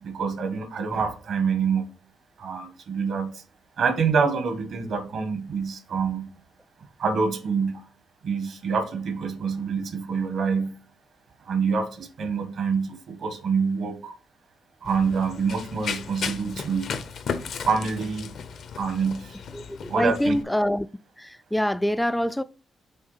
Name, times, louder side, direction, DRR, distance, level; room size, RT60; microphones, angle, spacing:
voice 1, 0.0-1.9 2.4-3.4 3.8-6.3 7.0-7.8 8.2-10.7 11.4-14.1 14.8-16.9 17.4-18.3 18.8-19.4 19.9-20.3, right 5 dB, 70° right, 1.4 m, -26 dB
Run, 14.8-20.4, left 6 dB, 70° left, 0.8 m, -35 dB
voice 2, 19.5-20.9 21.2-22.4, equal, 5° left, 0.3 m, -25 dB
6.3 x 3.6 x 5.8 m
cardioid pair, 85°, 0 cm